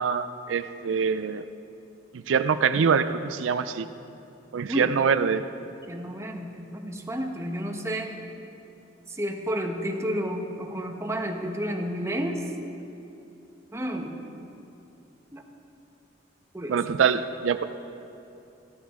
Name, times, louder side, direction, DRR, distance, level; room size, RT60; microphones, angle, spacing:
voice 1, 0.0-1.4 2.1-3.9 4.5-5.4 16.7-17.6, right 6 dB, 85° right, 12 dB, 0.4 m, -24 dB
voice 2, 5.9-8.1 9.1-12.4 13.7-14.2 15.3-15.4 16.5-16.8, equal, 15° right, 3 dB, 1.0 m, -31 dB
15.0 x 12.5 x 3.6 m, 2.8 s
head